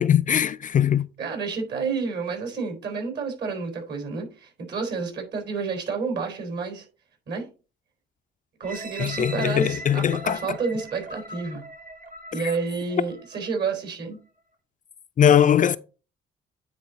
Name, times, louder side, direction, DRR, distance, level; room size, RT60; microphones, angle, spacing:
voice 1, 0.0-1.1 9.0-10.6 12.3-12.4 15.2-15.8, left 9 dB, 40° left, 0.4 m, -20 dB
voice 2, 1.2-6.9 7.3-7.4 8.6-11.6 12.3-14.2, right 4 dB, 60° right, 4.0 m, -30 dB
sound 1, 8.6-13.6 14.1-14.2, right 2 dB, 40° right, 1.6 m, -40 dB
9.4 x 4.0 x 4.0 m
cardioid pair, 90°, 20 cm